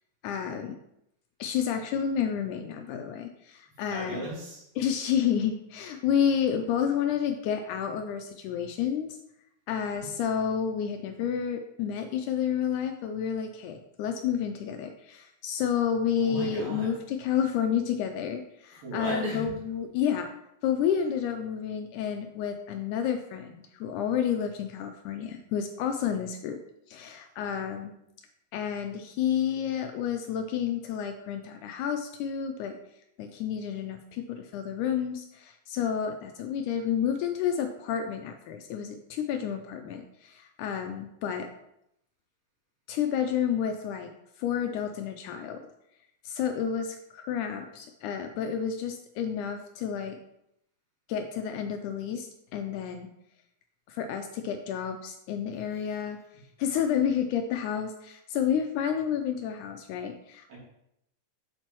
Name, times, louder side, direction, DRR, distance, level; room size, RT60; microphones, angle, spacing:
voice 1, 0.2-0.8 1.4-4.2 4.8-9.2 9.7-20.3 20.6-26.6 26.9-27.9 28.5-32.8 33.2-41.5 42.9-44.1 44.4-45.6 46.2-50.2 51.1-53.1 53.9-60.6, left 8 dB, 85° left, 6 dB, 1.8 m, -30 dB
voice 2, 3.9-4.7 9.9-10.1 16.2-16.9 18.7-19.5 55.7-56.0 60.5-60.6, right 2 dB, 70° right, -6 dB, 4.6 m, -36 dB
7.6 x 7.5 x 3.0 m, 0.80 s
omnidirectional pair, 4.1 m